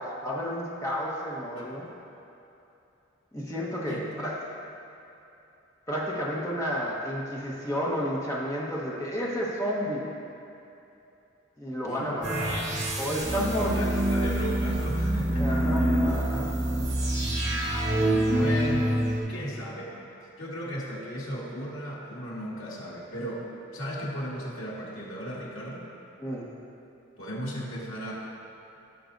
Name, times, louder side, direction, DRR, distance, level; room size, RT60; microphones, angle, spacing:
voice 1, 0.0-1.9 3.3-4.3 5.9-10.1 11.6-12.7 12.9-14.1 15.4-16.5 26.2-26.5, equal, 15° left, -5 dB, 1.2 m, -31 dB
voice 2, 1.6-1.9 3.9-4.3 11.9-12.1 13.3-16.0 18.3-20.0 20.4-25.9 27.2-28.1, equal, 80° left, -6 dB, 2.0 m, -36 dB
sound 1, 12.2-19.2, right 1 dB, 65° right, 2.0 m, -26 dB
15.5 x 6.0 x 2.6 m, 2.9 s
head